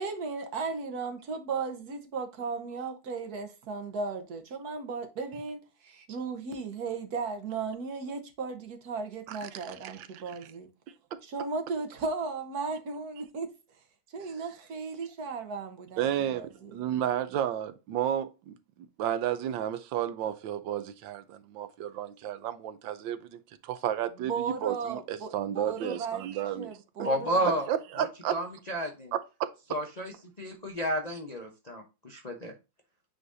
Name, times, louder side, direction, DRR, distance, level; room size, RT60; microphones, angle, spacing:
voice 1, 0.0-10.7 11.2-13.5 14.1-16.7 24.2-26.2 26.6-27.6, right 4 dB, 60° right, 1.5 m, -36 dB
voice 2, 9.3-10.2 11.1-11.2 16.0-27.1 27.4-28.4 29.1-29.5, right 10 dB, 90° right, 1.4 m, -32 dB
voice 3, 27.0-27.7 28.0-29.1 29.7-30.1 30.4-32.5, equal, 35° left, 0.6 m, -31 dB
8.9 x 4.0 x 2.6 m
omnidirectional pair, 2.0 m